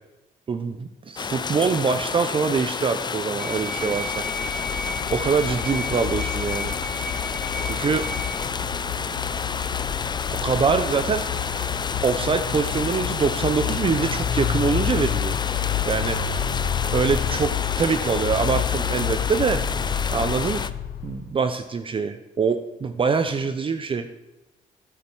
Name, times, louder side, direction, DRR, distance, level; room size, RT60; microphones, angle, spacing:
voice 1, 0.5-4.3 5.1-6.8 7.7-8.0 10.4-11.7 12.0-15.4 15.9-16.5 16.9-19.6 20.1-20.6 21.0-24.1, right 5 dB, 35° right, 9 dB, 0.6 m, -24 dB
sound 1, 1.2-20.7, left 5 dB, 30° left, 0.5 m, -30 dB
sound 2, 3.4-8.4, left 1 dB, ahead, 2.4 m, -34 dB
sound 3, 3.7-21.3, left 9 dB, 85° left, 0.7 m, -29 dB
8.6 x 8.5 x 4.5 m, 1.1 s
cardioid pair, 80°, 15 cm